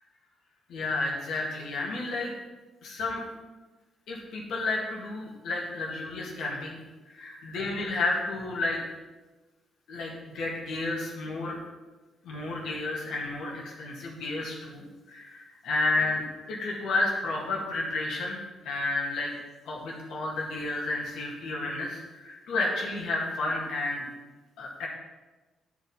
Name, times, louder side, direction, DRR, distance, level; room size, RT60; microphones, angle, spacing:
voice 1, 0.7-2.3 2.8-3.2 4.1-6.8 7.1-8.8 9.9-11.6 12.2-19.3 19.7-24.1 24.6-24.9, left 2 dB, 75° left, -2 dB, 2.0 m, -31 dB
9.3 x 5.0 x 5.5 m, 1.2 s
supercardioid pair, 70°, 0 cm